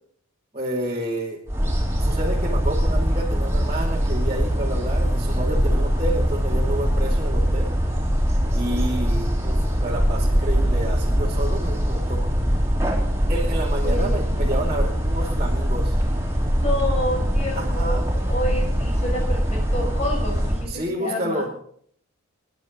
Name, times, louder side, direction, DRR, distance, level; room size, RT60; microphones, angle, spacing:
voice 1, 0.5-1.4 2.0-7.7 8.5-12.2 13.3-16.0 17.5-18.0 20.7-21.5, right 1 dB, 30° right, -4 dB, 2.8 m, -30 dB
sound 1, 1.5-20.7, equal, 10° right, 4.1 m, -22 dB
voice 2, 13.8-14.7 16.5-18.0 18.3-21.4, left 1 dB, 30° left, -1 dB, 6.5 m, -29 dB
24.5 x 11.0 x 4.0 m, 0.62 s
head